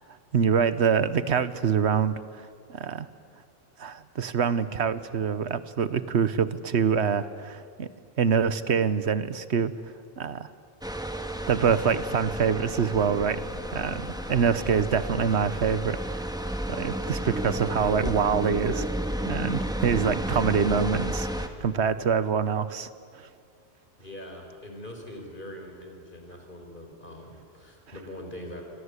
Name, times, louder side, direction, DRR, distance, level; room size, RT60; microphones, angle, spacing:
voice 1, 0.3-3.1 3.8-7.9 8.2-9.7 10.2-10.5 11.5-13.4 13.7-16.3 16.7-18.9 19.3-22.9 23.1-23.3, right 6 dB, 80° right, 13 dB, 1.3 m, -25 dB
sound 1, 10.8-21.5, equal, 5° right, 1.6 m, -32 dB
voice 2, 24.0-28.6, left 1 dB, 50° left, 3 dB, 4.8 m, -42 dB
27.5 x 26.0 x 8.3 m, 2.2 s
omnidirectional pair, 1.1 m